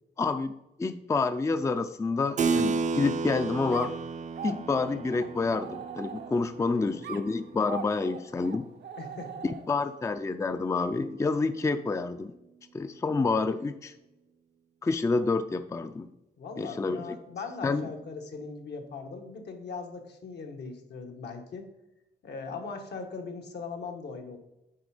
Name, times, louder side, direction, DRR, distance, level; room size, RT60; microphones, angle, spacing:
voice 1, 0.2-0.5 0.8-3.9 4.4-8.6 9.4-12.3 12.7-13.9 14.8-16.1 16.6-17.2 17.6-17.9, left 3 dB, 15° left, 10 dB, 0.4 m, -28 dB
Keyboard (musical), 2.4-8.4, right 4 dB, 45° right, 0.4 m, -33 dB
sound 1, 3.7-6.6 7.0-9.9, right 7 dB, 80° right, 0.7 m, -42 dB
voice 2, 6.6-6.9 9.0-9.4 16.4-21.7 22.2-24.4, left 4 dB, 75° left, 3 dB, 1.3 m, -40 dB
9.2 x 4.2 x 4.9 m, 0.93 s
wide cardioid pair, 115°, 18 cm